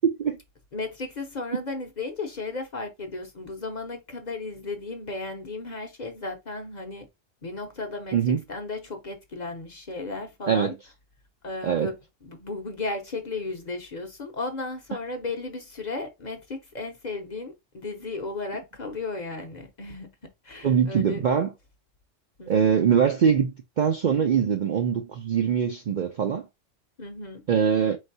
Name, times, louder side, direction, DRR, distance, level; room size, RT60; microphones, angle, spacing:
voice 1, 0.0-0.4 8.1-8.4 10.5-10.7 11.6-11.9 20.6-21.5 22.5-26.5 27.5-28.0, right 7 dB, 60° right, 0.5 m, -23 dB
voice 2, 0.7-7.1 7.4-10.7 11.4-12.0 12.2-20.1 20.4-21.2 22.4-22.7 27.0-27.4, left 3 dB, 45° left, 0.7 m, -35 dB
4.3 x 3.2 x 2.6 m
omnidirectional pair, 1.3 m